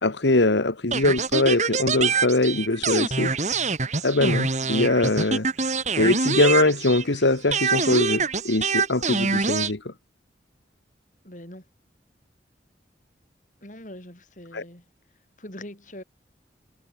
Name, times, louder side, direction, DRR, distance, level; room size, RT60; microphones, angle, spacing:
voice 1, 0.0-3.3 4.0-5.5 6.0-9.9 14.5-14.6, left 2 dB, 90° left, 1.7 m, -22 dB
sound 1, 0.9-7.2 7.5-9.7, right 4 dB, 40° right, 2.7 m, -25 dB
voice 2, 11.2-11.6 13.6-14.8 15.4-16.0, left 1 dB, 45° left, 6.4 m, -42 dB
head